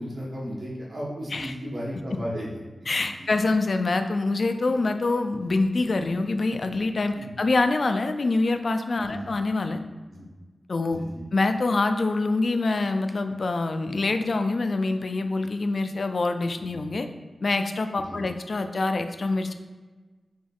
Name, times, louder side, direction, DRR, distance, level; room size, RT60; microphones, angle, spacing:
voice 1, 0.0-2.5 3.0-3.4 7.2-7.3 9.1-9.2 10.1-10.3 10.9-11.2 16.7-16.8 18.0-18.2, equal, 70° right, -6 dB, 1.2 m, -35 dB
voice 2, 2.9-9.8 10.7-11.0 11.3-17.1 17.4-19.5, left 3 dB, 60° left, 7 dB, 0.3 m, -25 dB
3.6 x 2.9 x 3.8 m, 1.3 s
wide cardioid pair, 95°, 0 cm